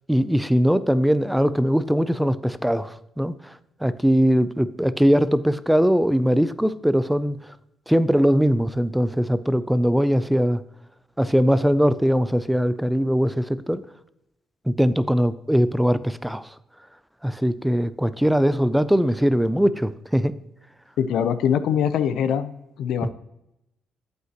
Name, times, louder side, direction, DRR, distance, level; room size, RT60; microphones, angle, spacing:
voice 1, 0.1-3.6 3.8-7.5 7.9-10.6 11.2-13.8 14.7-16.5 17.2-20.4 23.0-23.1, equal, 5° right, 15 dB, 0.4 m, -21 dB
voice 2, 21.0-22.5 22.8-23.1, left 8 dB, 80° left, 12 dB, 0.5 m, -22 dB
8.4 x 7.7 x 2.9 m, 0.86 s
cardioid pair, 90°, 0 cm